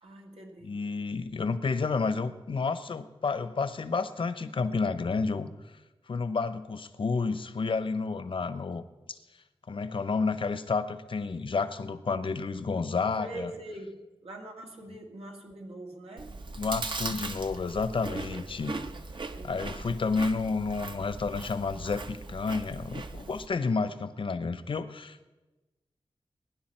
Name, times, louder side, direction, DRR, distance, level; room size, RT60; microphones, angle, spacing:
voice 1, 0.0-0.8 13.2-16.4 19.3-19.7, right 1 dB, 85° right, 1 dB, 1.9 m, -43 dB
voice 2, 0.6-5.5 6.1-8.8 9.1-9.2 9.7-13.5 16.6-18.7 19.4-25.3, left 4 dB, 60° left, 12 dB, 0.8 m, -30 dB
Chewing mastication, 16.2-23.5, right 3 dB, 55° right, 0.9 m, -39 dB
20.5 x 10.5 x 4.4 m, 1.1 s
wide cardioid pair, 110°, 10 cm